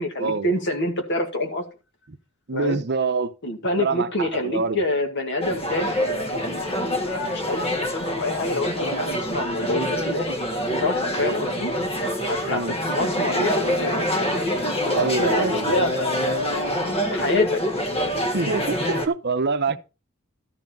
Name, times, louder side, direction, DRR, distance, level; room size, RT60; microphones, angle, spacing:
voice 1, 0.0-1.6 2.5-2.8 3.4-10.3 10.8-11.7 12.2-14.0 14.6-17.6, left 1 dB, 55° left, 2.1 m, -27 dB
voice 2, 2.5-3.3 3.8-4.8 12.4-12.7 15.0-15.7 18.3-19.8, right 4 dB, 50° right, 0.8 m, -25 dB
sound 1, 5.4-19.1, equal, 30° left, 1.4 m, -25 dB
12.5 x 5.2 x 5.3 m
head